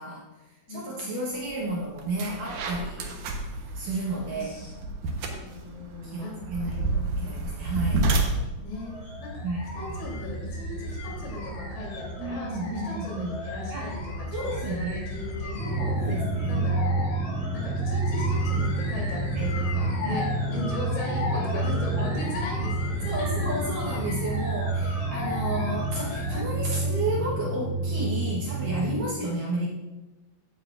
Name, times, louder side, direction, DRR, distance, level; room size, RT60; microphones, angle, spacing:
voice 1, 0.0-3.1 3.7-4.7 6.0-8.1 9.4-9.7 12.2-13.3 13.7-13.9 14.3-15.1 16.0-16.6 19.3-19.5 20.0-20.2 21.1-21.6 22.0-22.1 23.0-29.7, right 2 dB, 65° right, -4 dB, 2.2 m, -32 dB
voice 2, 0.7-1.3 4.3-4.7 5.2-7.3 8.6-8.9 9.2-9.4 9.7-16.0 16.5-17.1 17.5-20.2 20.5-23.5 24.8-24.9 28.9-29.1, left 1 dB, 90° left, -3 dB, 5.6 m, -38 dB
sound 1, 1.5-1.6 2.0-10.3, right 2 dB, 90° right, 1.7 m, -30 dB
sound 2, 8.7-26.4, left 2 dB, 45° left, 3.2 m, -35 dB
Drum, 15.6-29.0, right 2 dB, 20° right, 0.7 m, -29 dB
15.5 x 8.4 x 2.5 m, 1.1 s
omnidirectional pair, 5.2 m